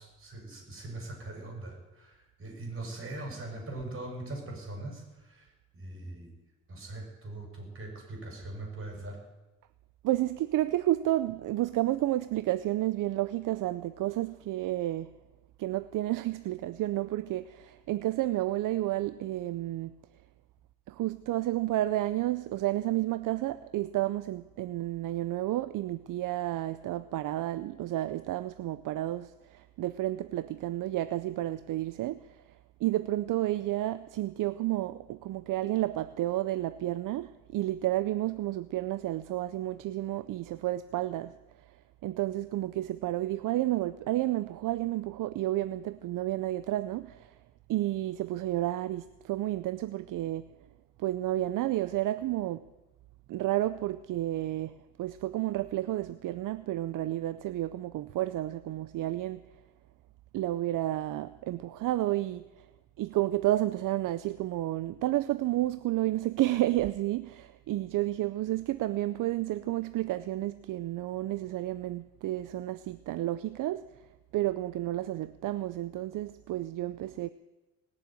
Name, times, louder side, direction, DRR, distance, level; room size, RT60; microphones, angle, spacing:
voice 1, 0.0-5.5 5.7-6.3 6.7-9.2, right 2 dB, 40° right, 6.3 m, -41 dB
voice 2, 10.0-15.1 15.6-20.0 20.9-32.3 32.8-41.3 42.0-47.3 47.7-50.5 51.0-52.6 53.3-59.4 60.3-62.7 63.0-73.8 74.3-77.3, right 15 dB, 70° right, 0.6 m, -31 dB
20.0 x 7.4 x 9.1 m
cardioid pair, 100°, 33 cm